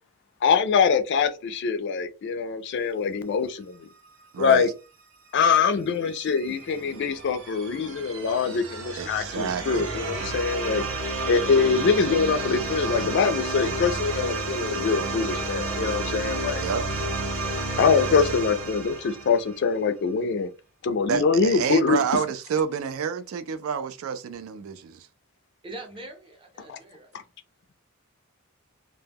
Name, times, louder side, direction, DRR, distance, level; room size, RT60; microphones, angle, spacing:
voice 1, 0.4-3.9 4.4-4.7 5.3-10.8 11.3-16.6 17.8-20.5 20.8-22.0 26.7-26.8, left 5 dB, 55° left, 0.4 m, -24 dB
voice 2, 4.3-4.7 9.0-9.9 16.6-16.8 21.1-25.1, right 6 dB, 75° right, 0.3 m, -28 dB
sound 1, 5.9-19.7, right 2 dB, 90° right, 0.7 m, -31 dB
voice 3, 25.6-27.1, right 2 dB, 25° right, 0.6 m, -42 dB
2.1 x 2.1 x 3.3 m
head